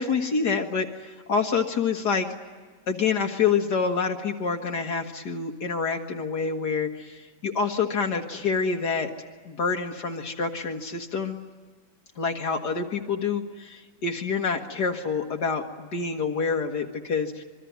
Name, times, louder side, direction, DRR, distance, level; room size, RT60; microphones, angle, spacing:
voice 1, 0.0-2.3 2.9-9.1 9.5-11.4 12.2-17.4, left 5 dB, 70° left, 2 dB, 2.1 m, -27 dB
26.5 x 23.0 x 9.3 m, 1.4 s
omnidirectional pair, 1.8 m